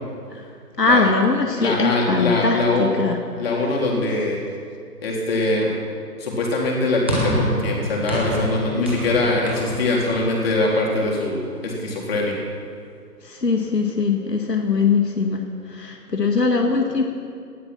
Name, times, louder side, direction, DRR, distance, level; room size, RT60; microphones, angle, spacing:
voice 1, 0.8-3.2 3.6-3.8 13.2-17.0, left 4 dB, 80° left, 3 dB, 2.0 m, -21 dB
voice 2, 1.6-2.9 3.4-4.4 5.0-5.8 6.2-12.4, left 2 dB, 40° left, -2 dB, 3.8 m, -22 dB
sound 1, 7.1-11.5, equal, 10° right, 0.7 m, -27 dB
18.5 x 13.0 x 6.1 m, 2.3 s
figure-of-eight pair, 155°, 48 cm